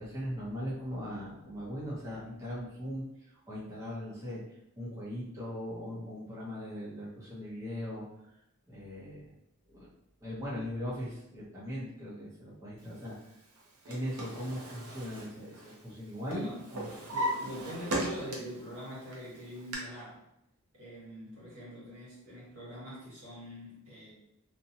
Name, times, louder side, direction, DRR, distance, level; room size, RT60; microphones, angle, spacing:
voice 1, 0.0-3.0 3.5-4.4 4.8-8.0 8.7-9.3 9.7-9.9 10.2-13.2 13.8-16.9, equal, 15° right, -9 dB, 0.7 m, -39 dB
Drawer open or close, 13.6-16.0 16.3-18.6 19.1-19.8, right 1 dB, 90° right, 0.7 m, -37 dB
voice 2, 16.2-16.6 17.1-20.2 20.7-24.1, equal, 70° right, -6 dB, 1.4 m, -43 dB
2.8 x 2.2 x 2.7 m, 0.82 s
head